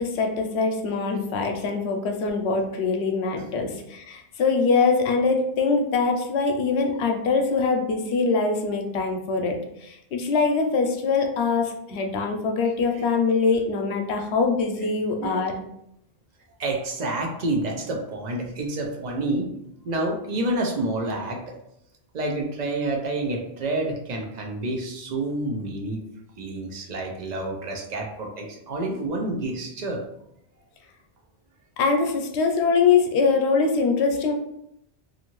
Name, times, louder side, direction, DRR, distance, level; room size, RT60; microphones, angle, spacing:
voice 1, 0.0-15.5 31.8-34.3, left 4 dB, 85° left, 4 dB, 0.8 m, -23 dB
voice 2, 16.6-19.5 19.8-21.4 22.1-26.0 26.4-30.0, right 2 dB, 50° right, 1 dB, 0.6 m, -28 dB
2.6 x 2.5 x 3.0 m, 0.78 s
omnidirectional pair, 1.1 m